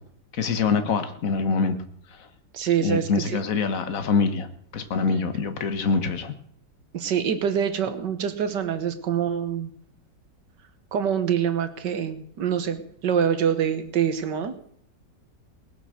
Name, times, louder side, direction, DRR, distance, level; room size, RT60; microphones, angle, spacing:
voice 1, 0.3-1.7 2.8-4.5 4.7-6.3, left 4 dB, 50° left, 9 dB, 1.6 m, -24 dB
voice 2, 2.5-3.4 6.9-9.7 10.9-14.5, right 8 dB, 75° right, 10 dB, 1.8 m, -25 dB
19.0 x 8.0 x 6.5 m, 0.63 s
omnidirectional pair, 1.9 m